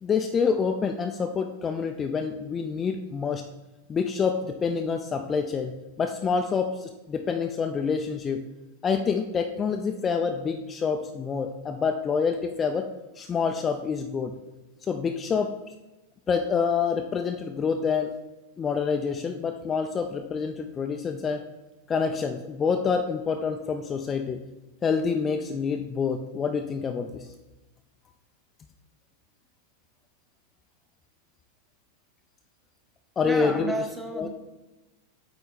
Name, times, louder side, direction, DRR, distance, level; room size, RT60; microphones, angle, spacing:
voice 1, 0.0-3.4 3.9-8.4 8.8-12.9 13.2-14.3 14.9-15.5 16.3-18.2 18.6-21.5 21.9-24.4 24.8-27.3 33.2-33.7 34.1-34.3, left 5 dB, 20° left, 5 dB, 0.4 m, -27 dB
voice 2, 33.2-34.3, right 2 dB, 5° right, 4 dB, 0.9 m, -31 dB
8.5 x 3.8 x 3.6 m, 1.1 s
figure-of-eight pair, 90°, 0 cm